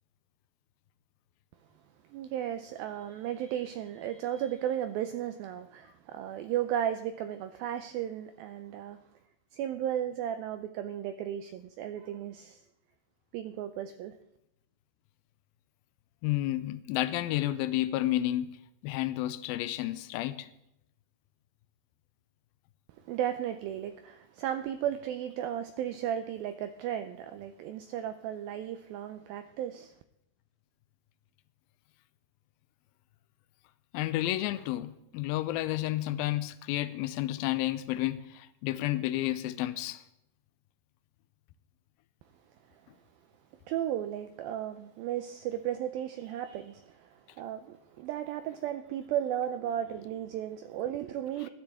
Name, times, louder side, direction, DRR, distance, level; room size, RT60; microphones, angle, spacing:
voice 1, 2.1-9.0 9.5-12.6 13.3-14.2 23.1-29.9 43.7-51.5, right 10 dB, 85° right, 2.1 m, -35 dB
voice 2, 16.2-18.5 18.8-20.5 33.9-40.0, left 15 dB, 85° left, 2.1 m, -31 dB
18.5 x 12.5 x 3.6 m
omnidirectional pair, 4.9 m